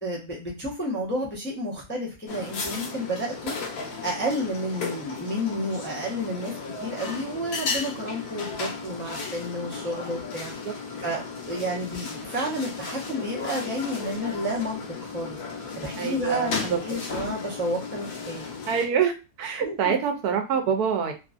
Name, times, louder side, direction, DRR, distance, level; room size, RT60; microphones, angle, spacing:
voice 1, 0.0-3.6 4.0-6.5 6.8-10.5 11.0-15.4 15.8-18.4 19.6-19.8, equal, 10° left, -5 dB, 0.5 m, -31 dB
sound 1, 2.3-18.9, left 4 dB, 75° left, 1.2 m, -35 dB
voice 2, 16.0-16.8 18.7-19.1 19.4-21.1, right 7 dB, 75° right, 5 dB, 1.1 m, -25 dB
3.0 x 2.5 x 2.4 m, 0.29 s
omnidirectional pair, 1.7 m